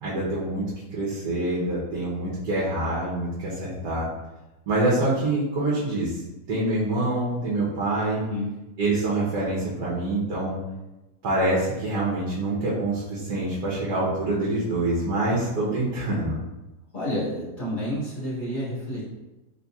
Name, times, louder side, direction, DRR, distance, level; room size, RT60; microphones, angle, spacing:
voice 1, 0.0-0.6 0.9-4.1 4.7-6.2 6.5-8.2 8.8-10.6 11.2-16.4, right 2 dB, 80° right, -6 dB, 1.4 m, -26 dB
voice 2, 8.1-8.5 16.9-19.0, left 1 dB, 30° left, -10 dB, 1.7 m, -30 dB
4.0 x 3.5 x 2.3 m, 1.0 s
omnidirectional pair, 1.7 m